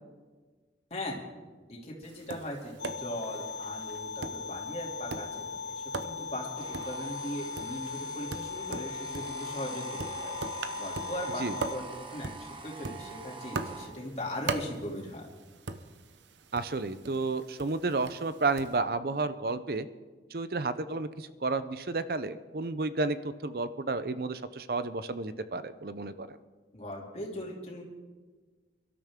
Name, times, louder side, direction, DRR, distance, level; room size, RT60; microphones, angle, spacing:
voice 1, 0.9-1.2 1.7-9.9 10.2-10.4 10.8-15.3 26.7-27.8, left 1 dB, 35° left, -2 dB, 2.7 m, -39 dB
Tap, 2.0-18.8, right 3 dB, 90° right, 0.9 m, -42 dB
sound 1, 2.8-11.8, left 5 dB, 60° left, 0.5 m, -39 dB
sound 2, 6.6-13.9, right 4 dB, 30° right, 1.2 m, -45 dB
voice 2, 16.5-19.9 20.3-26.4, right 3 dB, 55° right, 13 dB, 0.6 m, -32 dB
23.5 x 12.5 x 3.7 m, 1.4 s
head